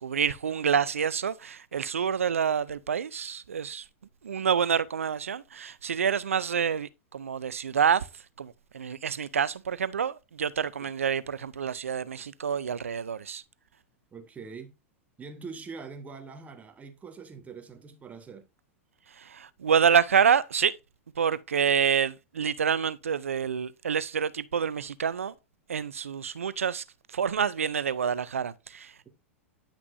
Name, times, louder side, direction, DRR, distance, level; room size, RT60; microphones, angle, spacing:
voice 1, 0.0-3.8 4.2-8.1 8.4-13.4 19.2-20.7 21.2-25.3 25.7-28.9, right 7 dB, 85° right, 0.5 m, -27 dB
voice 2, 14.1-14.7 15.2-18.4, right 5 dB, 20° right, 1.4 m, -43 dB
9.8 x 5.9 x 2.6 m
hypercardioid pair, 100°, 7 cm